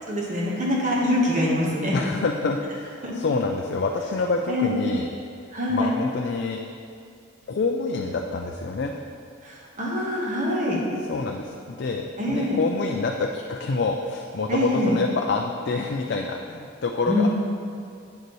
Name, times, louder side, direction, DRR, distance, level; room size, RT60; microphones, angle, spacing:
voice 1, 0.1-2.0 3.0-3.1 4.5-4.8 5.5-5.9 9.4-10.8 12.2-12.6 14.5-14.9 17.1-17.3, left 1 dB, 40° right, -4 dB, 1.3 m, -24 dB
voice 2, 1.9-5.1 5.7-6.6 7.5-8.9 11.1-17.3, left 3 dB, 55° left, 2 dB, 0.4 m, -27 dB
8.0 x 6.7 x 3.1 m, 2.4 s
head